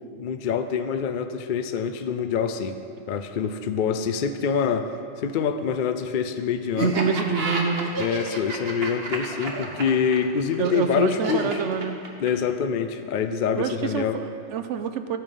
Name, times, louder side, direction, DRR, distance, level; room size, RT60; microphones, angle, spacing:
voice 1, 0.2-2.8 3.1-4.9 5.2-7.0 8.0-11.5 12.2-14.2, left 6 dB, 55° left, 9 dB, 0.5 m, -25 dB
Laughter, 6.8-12.5, right 3 dB, 50° right, 1.4 m, -30 dB
voice 2, 6.8-8.0 10.6-12.0 13.5-15.2, right 6 dB, 70° right, 9 dB, 0.9 m, -26 dB
13.0 x 8.6 x 5.4 m, 2.6 s
omnidirectional pair, 1.3 m